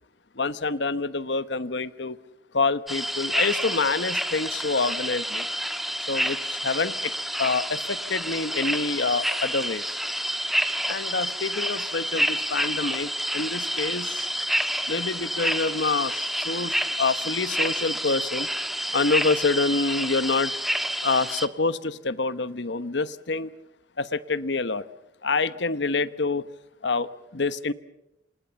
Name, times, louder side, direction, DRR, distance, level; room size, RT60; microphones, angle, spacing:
voice 1, 0.4-2.2 2.5-5.5 6.1-7.1 7.4-9.8 10.9-14.3 14.9-18.5 18.9-20.5 21.0-23.5 24.0-24.9 25.2-26.5 26.8-27.7, left 3 dB, 65° left, 15 dB, 1.1 m, -27 dB
sound 1, 2.9-21.5, equal, ahead, 1.4 m, -29 dB
28.5 x 27.5 x 7.0 m, 0.90 s
head